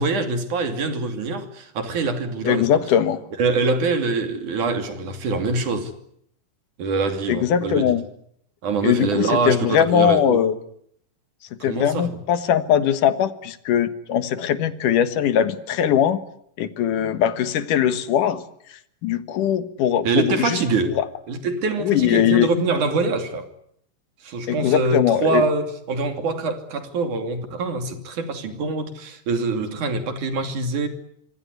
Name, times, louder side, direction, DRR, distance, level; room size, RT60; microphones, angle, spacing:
voice 1, 0.0-2.8 3.4-5.9 6.8-7.9 8.6-10.4 11.6-12.1 20.0-21.0 21.3-23.5 24.2-30.9, right 3 dB, 70° right, 4.2 m, -24 dB
voice 2, 2.4-3.2 7.3-8.0 8.8-10.6 11.6-16.2 16.6-18.4 19.0-20.6 20.9-21.0 21.8-22.5 24.5-25.4, left 9 dB, 80° left, 3.0 m, -20 dB
26.5 x 24.0 x 8.1 m
omnidirectional pair, 3.6 m